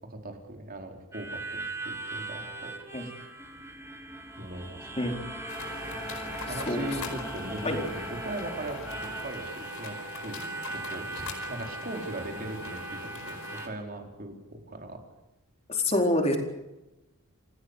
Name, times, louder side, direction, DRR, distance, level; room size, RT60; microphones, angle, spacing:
voice 1, 0.1-3.1 4.4-4.9 6.4-10.0 10.2-10.4 10.7-13.4 13.6-15.0, right 1 dB, 40° right, 3 dB, 4.2 m, -39 dB
Harmonica, 1.1-13.7, right 3 dB, 10° right, 3.1 m, -40 dB
sound 1, 3.4-9.3, equal, 5° left, 2.6 m, -42 dB
sound 2, 5.5-13.7, left 3 dB, 80° left, 4.8 m, -42 dB
voice 2, 15.7-16.4, left 1 dB, 30° left, 2 dB, 4.4 m, -26 dB
28.5 x 17.0 x 8.2 m, 0.98 s
head